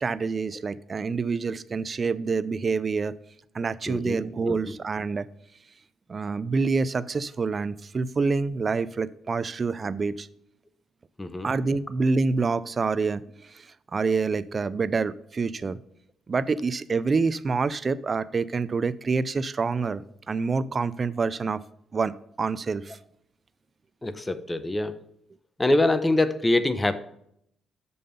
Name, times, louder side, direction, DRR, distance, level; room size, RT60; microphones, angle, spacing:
voice 1, 0.0-3.1 3.5-5.3 6.1-10.3 11.4-13.7 13.9-15.8 16.3-21.6 21.9-23.0, right 4 dB, 35° right, 16 dB, 0.4 m, -27 dB
voice 2, 3.9-4.5 11.2-11.5 24.0-24.9 25.6-26.9, left 2 dB, 15° left, 12 dB, 0.7 m, -24 dB
6.5 x 5.4 x 5.6 m, 0.72 s
cardioid pair, 90°, 0 cm